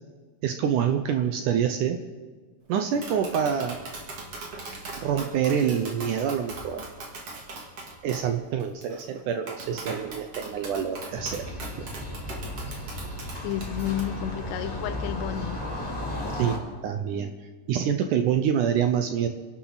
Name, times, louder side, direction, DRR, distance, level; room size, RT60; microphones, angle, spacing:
voice 1, 0.4-2.0 2.7-3.8 5.0-6.8 8.0-11.6 16.3-17.3 17.7-19.3, right 8 dB, 80° right, 7 dB, 1.8 m, -26 dB
Tap, 2.8-14.0, right 3 dB, 40° right, 2.9 m, -40 dB
sound 1, 11.1-16.6, left 1 dB, 5° left, 2.8 m, -34 dB
voice 2, 13.4-15.6, left 11 dB, 90° left, 11 dB, 3.0 m, -31 dB
28.5 x 12.0 x 4.1 m, 1.4 s
omnidirectional pair, 4.7 m